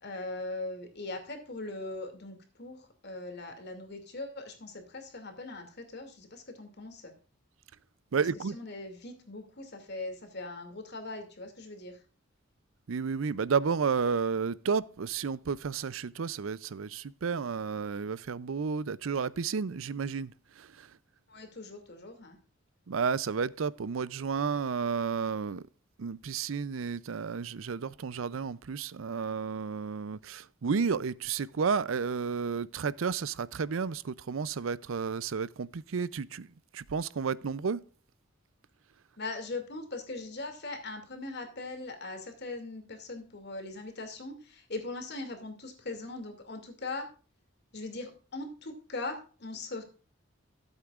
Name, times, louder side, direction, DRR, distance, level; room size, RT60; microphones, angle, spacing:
voice 1, 0.0-7.1 8.5-12.0 21.3-22.4 39.2-47.1 47.7-49.8, left 2 dB, 55° left, 2.5 m, -40 dB
voice 2, 8.1-8.6 12.9-20.9 22.9-25.6 26.0-36.5 36.7-37.8, right 5 dB, 85° right, 0.5 m, -32 dB
15.5 x 8.2 x 2.4 m
head